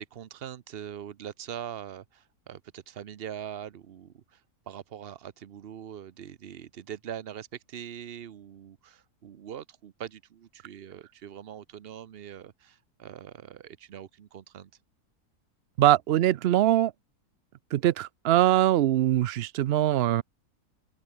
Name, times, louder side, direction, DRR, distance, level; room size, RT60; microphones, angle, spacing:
voice 1, 0.0-14.7, right 9 dB, 50° right, 0.8 m, -42 dB
voice 2, 15.8-16.9 17.7-20.2, right 13 dB, 85° right, 0.5 m, -22 dB
open air
omnidirectional pair, 1.6 m